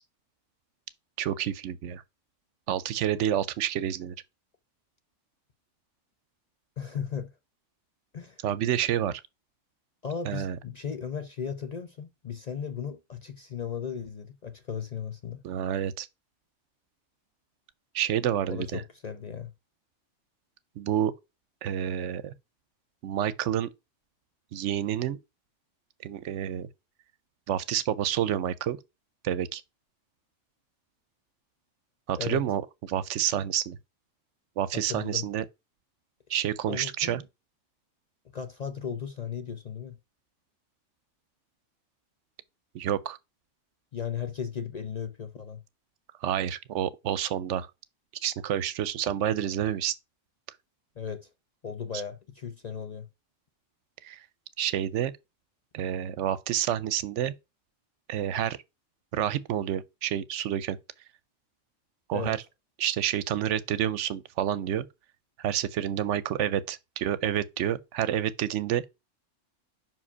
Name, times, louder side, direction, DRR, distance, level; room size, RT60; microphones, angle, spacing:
voice 1, 1.2-2.0 2.7-4.2 8.4-9.2 10.3-10.6 15.4-16.1 17.9-18.8 20.8-21.1 21.6-22.3 23.0-23.7 24.5-25.2 26.0-26.7 27.5-28.8 29.2-29.6 32.1-32.6 32.9-33.8 34.6-35.4 36.3-37.2 42.7-43.2 46.2-47.7 48.2-49.9 54.0-54.2 54.6-55.1 55.7-57.3 58.1-58.6 59.1-60.8 62.1-62.4 62.8-64.9 65.4-68.8, right 10 dB, 75° right, 0.9 m, -29 dB
voice 2, 6.8-7.3 8.1-8.4 10.0-15.4 18.5-19.5 32.2-32.4 34.7-35.3 36.7-37.2 38.3-40.0 43.9-45.6 51.0-51.3 51.6-53.1 62.1-62.4, left 7 dB, 45° left, 0.5 m, -36 dB
5.6 x 4.9 x 5.4 m
omnidirectional pair, 1.3 m